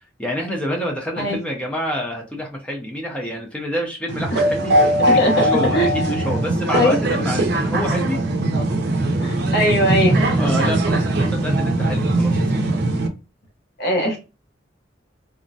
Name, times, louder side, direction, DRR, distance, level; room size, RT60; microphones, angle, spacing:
voice 1, 0.2-8.2 10.2-12.6, equal, 5° left, 0 dB, 0.4 m, -28 dB
sound 1, 4.1-13.1, right 1 dB, 60° right, 0.5 m, -20 dB
voice 2, 5.7-6.2 6.7-7.0 9.2-10.2 13.8-14.2, equal, 60° left, 2 dB, 0.8 m, -20 dB
3.3 x 2.0 x 2.5 m, 0.31 s
head